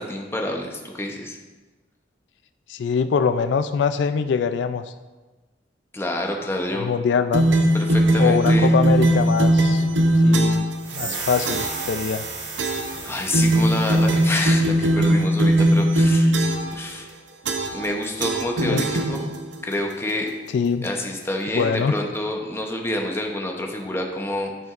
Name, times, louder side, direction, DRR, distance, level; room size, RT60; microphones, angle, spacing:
voice 1, 0.0-1.4 5.9-6.9 7.7-8.7 11.0-11.2 13.0-16.4 16.7-17.1 17.7-19.3 19.6-20.3 20.8-24.5, left 1 dB, 15° left, 1 dB, 0.8 m, -28 dB
voice 2, 2.7-4.8 6.7-7.5 8.2-9.8 10.2-10.7 10.9-12.3 18.6-18.9 20.5-20.9 21.5-21.9, left 6 dB, 75° left, 10 dB, 0.3 m, -23 dB
sound 1, 7.3-10.8 11.5-11.9 12.6-13.0 13.3-16.8 17.5-17.9 18.2-19.5, right 1 dB, 90° right, 0.7 m, -19 dB
sound 2, 10.8-14.5, right 4 dB, 70° right, 1.2 m, -33 dB
10.5 x 5.8 x 2.5 m, 1.2 s
head